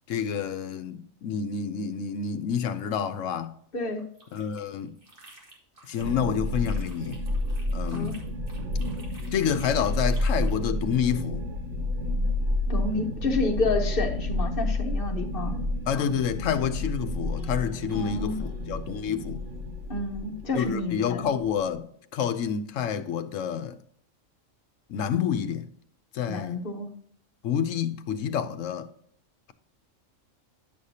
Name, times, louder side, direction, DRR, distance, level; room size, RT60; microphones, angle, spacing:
voice 1, 0.1-3.5 4.3-4.9 5.8-7.2 7.7-8.2 9.3-11.4 15.9-19.4 20.5-23.8 24.9-25.7 26.1-26.6 27.4-28.9, left 8 dB, 75° left, 1.0 m, -28 dB
voice 2, 3.7-4.0 7.9-8.1 12.7-15.6 17.9-18.4 19.9-21.2 26.3-27.0, left 3 dB, 45° left, 1.1 m, -29 dB
sound 1, 4.0-6.1 6.4-10.6, right 2 dB, 40° right, 2.0 m, -52 dB
sound 2, 6.0-21.8, left 1 dB, 70° right, 1.3 m, -30 dB
sound 3, 17.4-21.5, left 2 dB, 15° right, 1.7 m, -49 dB
10.0 x 6.5 x 2.8 m
omnidirectional pair, 1.4 m